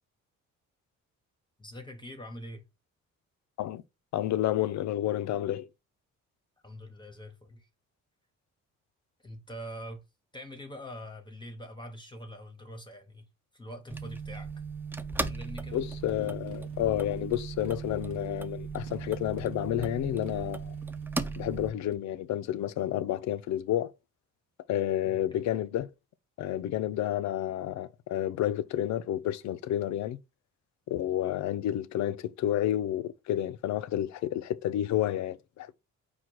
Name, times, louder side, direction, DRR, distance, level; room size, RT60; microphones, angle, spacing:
voice 1, 1.6-2.7 6.6-7.7 9.2-10.0 10.3-13.3 13.5-14.5 15.2-15.8 25.0-25.4, equal, 15° left, 0.8 m, -44 dB
voice 2, 4.1-5.7 15.7-20.7 21.4-23.9 24.7-25.9 26.4-30.2 30.9-35.7, left 12 dB, 65° left, 0.5 m, -30 dB
sound 1, 13.9-21.7, right 4 dB, 5° right, 0.4 m, -37 dB
Motorcycle, 15.1-22.0, right 2 dB, 75° right, 1.0 m, -52 dB
4.4 x 2.3 x 4.6 m
cardioid pair, 90°, 30 cm